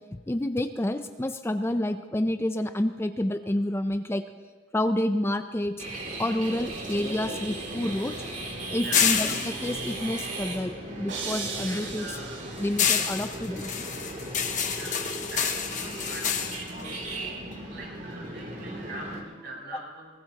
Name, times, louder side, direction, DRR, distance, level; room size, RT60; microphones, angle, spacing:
voice 1, 0.1-4.2 4.7-5.8 6.2-8.2 8.7-12.2 12.6-13.9, left 1 dB, 15° left, 9 dB, 0.4 m, -29 dB
sound 1, 5.8-19.2, right 1 dB, 40° right, 2.7 m, -37 dB
sound 2, 6.6-11.1 11.4-17.8, left 8 dB, 40° left, 1.1 m, -29 dB
sound 3, 11.1-13.2, right 4 dB, 85° right, 4.2 m, -37 dB
voice 2, 11.9-12.4 14.7-20.1, right 1 dB, 60° right, -4 dB, 6.7 m, -43 dB
23.0 x 20.0 x 2.9 m, 1.4 s
head